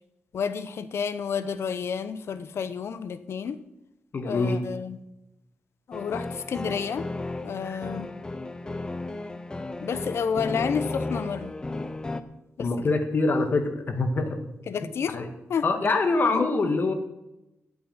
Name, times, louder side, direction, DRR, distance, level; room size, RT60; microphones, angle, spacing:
voice 1, 0.3-3.6 4.2-5.0 5.9-7.1 7.4-8.1 9.8-11.5 12.6-12.7 14.7-15.2 15.5-15.7 16.3-16.5, left 6 dB, 65° left, 13 dB, 0.9 m, -30 dB
voice 2, 4.1-4.6 7.6-7.8 12.6-14.4 15.1-15.3 15.6-16.9, left 3 dB, 45° left, 6 dB, 1.9 m, -24 dB
sound 1, 5.9-12.2, left 2 dB, 15° left, 0.7 m, -34 dB
13.0 x 7.4 x 9.0 m, 0.93 s
wide cardioid pair, 165°, 5 cm